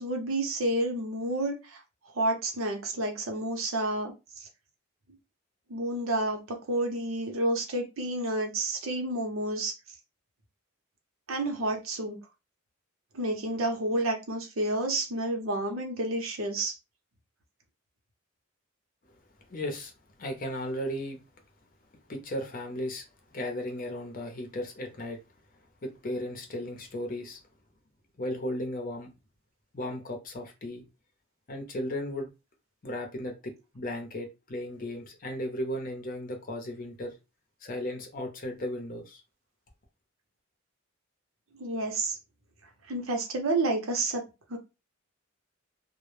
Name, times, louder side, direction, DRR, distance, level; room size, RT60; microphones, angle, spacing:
voice 1, 0.0-1.8 2.1-4.5 5.7-9.7 11.3-12.2 13.1-16.7 41.6-42.2 42.9-44.2 44.5-44.6, right 2 dB, 80° right, 0.7 m, -30 dB
voice 2, 19.5-19.9 20.2-21.2 22.1-23.0 23.3-25.2 25.8-27.4 28.2-29.1 29.7-30.8 31.5-32.3 32.8-37.1 37.6-39.2, left 1 dB, 45° left, 0.6 m, -35 dB
2.1 x 2.0 x 3.1 m
head